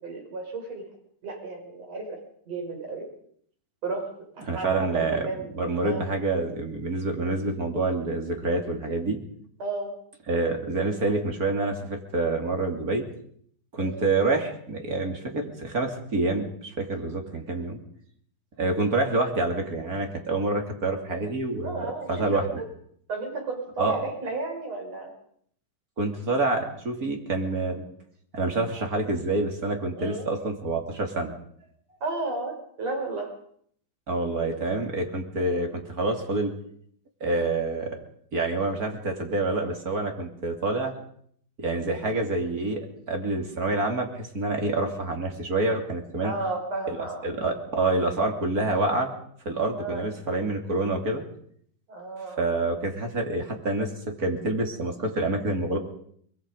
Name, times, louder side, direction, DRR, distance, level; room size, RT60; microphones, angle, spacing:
voice 1, 0.0-0.8 1.2-2.2 2.5-3.1 3.8-4.0 4.3-4.7 5.1-6.0 9.6-9.9 13.8-14.1 21.6-22.6 23.1-25.1 30.0-30.3 32.0-33.3 34.3-34.6 46.2-47.3 49.8-50.0 51.9-52.5, right 3 dB, 50° right, 1 dB, 7.2 m, -33 dB
voice 2, 4.4-5.3 5.5-9.2 10.3-13.0 13.7-17.8 18.6-22.4 23.8-24.0 26.0-27.8 28.3-31.3 34.1-36.5 37.2-38.0 38.3-40.9 41.6-46.3 46.9-47.0 47.2-49.1 49.4-51.2 52.4-53.9 54.2-55.8, right 2 dB, 30° right, 3 dB, 2.9 m, -27 dB
23.5 x 21.5 x 5.4 m, 0.64 s
omnidirectional pair, 3.8 m